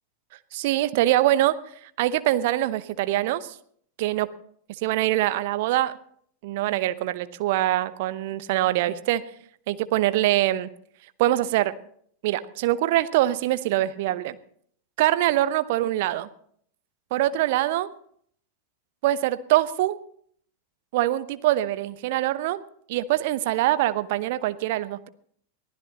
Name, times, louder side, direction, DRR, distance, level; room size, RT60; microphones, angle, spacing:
voice 1, 0.5-1.6 2.0-3.5 4.0-4.3 4.8-6.0 6.4-9.2 9.7-10.7 11.2-11.8 12.2-14.4 15.0-16.3 17.1-17.9 19.0-20.0 20.9-22.6 22.9-25.1, right 14 dB, 50° right, 14 dB, 0.8 m, -23 dB
23.5 x 15.5 x 2.9 m, 0.62 s
figure-of-eight pair, 90°, 0 cm